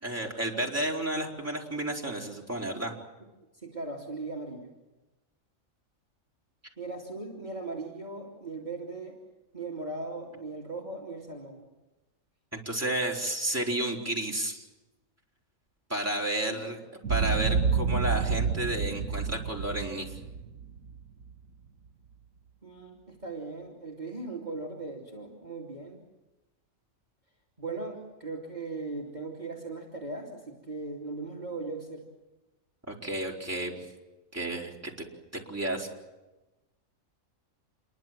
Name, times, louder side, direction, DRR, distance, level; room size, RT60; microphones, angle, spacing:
voice 1, 0.0-2.9 12.6-14.7 15.9-16.8 17.1-20.1 32.9-33.9 34.3-34.7 35.5-35.9, right 1 dB, 10° right, -2 dB, 4.3 m, -31 dB
voice 2, 3.5-4.7 6.8-9.2 9.5-11.6 16.5-16.7 22.6-26.0 27.6-32.1, right 3 dB, 30° right, -2 dB, 3.0 m, -38 dB
Boom, 17.0-21.3, right 6 dB, 90° right, 1.5 m, -29 dB
28.0 x 23.0 x 7.7 m, 1.1 s
omnidirectional pair, 1.4 m